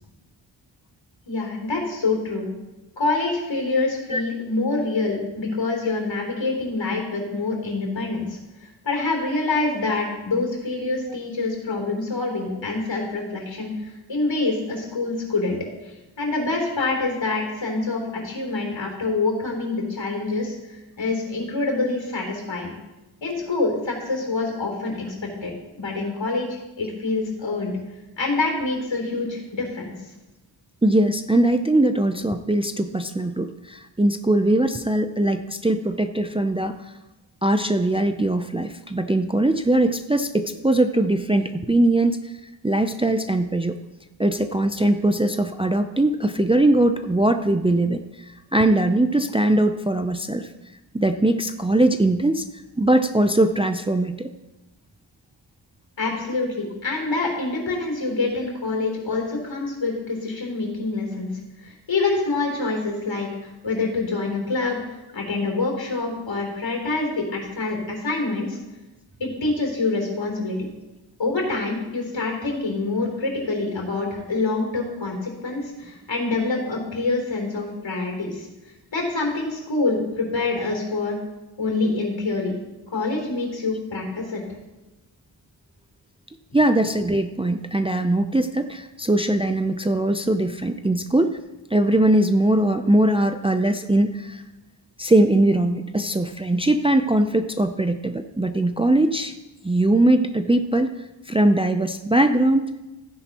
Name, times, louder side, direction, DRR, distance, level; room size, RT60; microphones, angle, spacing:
voice 1, 1.3-2.5 3.0-15.6 15.8-22.7 23.2-25.1 25.4-27.7 28.2-29.9 56.0-61.3 61.6-64.8 65.1-68.6 69.2-70.7 71.2-78.5 78.9-81.2 81.6-82.5 82.9-84.4, left 3 dB, 70° left, 0 dB, 3.5 m, -26 dB
voice 2, 30.8-36.7 37.4-42.3 42.6-43.8 44.2-50.5 50.9-52.5 52.8-54.3 86.5-91.4 91.7-94.4 95.0-99.4 99.6-101.0 101.3-102.7, right 1 dB, 10° right, 8 dB, 0.5 m, -21 dB
15.0 x 10.0 x 3.0 m, 1.1 s
wide cardioid pair, 80°, 46 cm